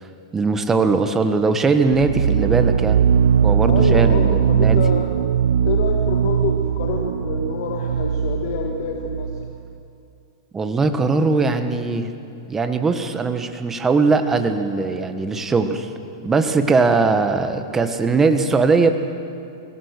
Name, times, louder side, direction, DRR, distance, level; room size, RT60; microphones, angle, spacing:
voice 1, 0.3-3.0 3.4-4.8 10.5-12.1 12.5-15.9 16.2-18.9, right 4 dB, 15° right, 8 dB, 1.3 m, -20 dB
sound 1, 1.9-9.6, right 8 dB, 80° right, 0.7 m, -19 dB
voice 2, 3.7-5.1 5.7-9.4, left 5 dB, 60° left, 1 dB, 1.8 m, -27 dB
23.5 x 17.5 x 6.7 m, 2.5 s
hypercardioid pair, 130°, 2 cm